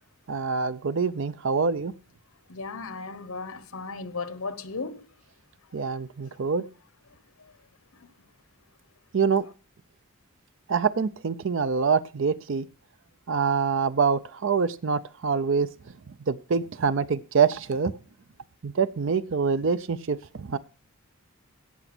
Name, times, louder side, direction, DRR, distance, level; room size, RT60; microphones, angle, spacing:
voice 1, 0.3-1.9 5.7-6.6 9.1-9.5 10.7-12.7 13.3-15.7 16.3-17.9 18.6-20.6, right 5 dB, 60° right, 0.5 m, -25 dB
voice 2, 2.5-5.0 8.0-8.1, left 4 dB, 80° left, 1.1 m, -35 dB
17.0 x 6.0 x 6.0 m
head